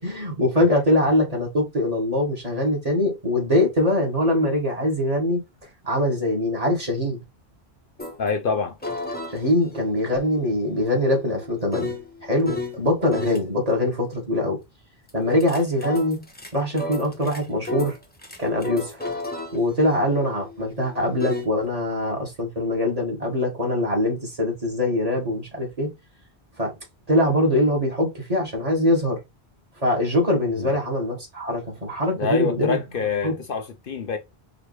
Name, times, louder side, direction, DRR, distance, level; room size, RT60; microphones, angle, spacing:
voice 1, 0.0-5.4 5.8-7.2 9.3-11.9 12.2-14.6 15.1-16.2 16.5-18.0 18.4-19.0 19.5-25.9 26.6-26.7 27.1-29.2 29.8-32.8 33.2-33.3, left 1 dB, 35° right, 1.9 m, -23 dB
sound 1, 8.0-8.2 8.8-12.8 13.1-13.4 15.1-21.5, left 2 dB, 10° left, 0.9 m, -33 dB
voice 2, 8.2-8.8 30.6-30.7 32.2-34.2, left 5 dB, 60° left, 0.8 m, -26 dB
4.9 x 2.9 x 3.1 m
omnidirectional pair, 1.1 m